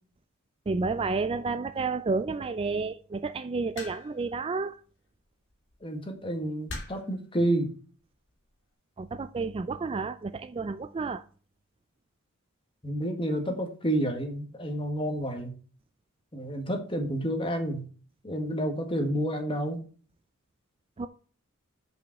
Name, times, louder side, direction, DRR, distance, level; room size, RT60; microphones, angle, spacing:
voice 1, 0.7-4.8 9.0-11.2 21.0-21.1, right 4 dB, 25° right, 0.3 m, -31 dB
sound 1, 3.8-4.3 5.5-5.7 6.7-7.2 8.1-8.4, left 2 dB, 55° left, 2.5 m, -40 dB
voice 2, 5.8-7.7 12.8-15.5 16.3-17.8 18.2-19.8, right 1 dB, 25° left, 1.6 m, -29 dB
7.1 x 5.3 x 5.8 m
head